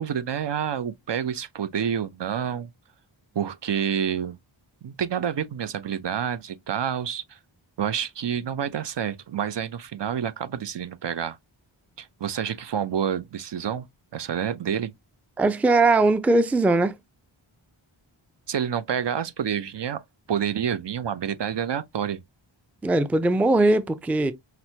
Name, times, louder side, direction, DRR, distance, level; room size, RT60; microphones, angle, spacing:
voice 1, 0.0-2.7 3.3-4.4 4.8-7.4 7.8-11.4 12.0-13.9 14.1-14.9 18.5-20.0 20.3-22.2, right 8 dB, 60° right, 0.6 m, -28 dB
voice 2, 15.4-16.9 22.8-24.3, right 2 dB, 5° right, 0.3 m, -20 dB
5.9 x 2.1 x 2.7 m
wide cardioid pair, 50°, 48 cm